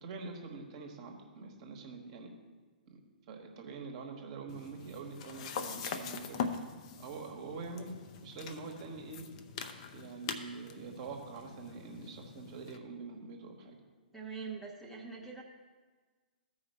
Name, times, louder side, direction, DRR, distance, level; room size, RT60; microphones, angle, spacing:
voice 1, 0.0-2.3 2.9-3.0 3.3-6.5 7.0-7.9 8.2-9.3 9.9-13.8, right 4 dB, 40° right, 2 dB, 1.2 m, -45 dB
sound 1, 4.5-12.8, left 6 dB, 40° left, 0.6 m, -43 dB
voice 2, 14.1-15.4, right 5 dB, ahead, -2 dB, 0.8 m, -43 dB
14.0 x 4.8 x 4.3 m, 1.4 s
figure-of-eight pair, 115°, 5 cm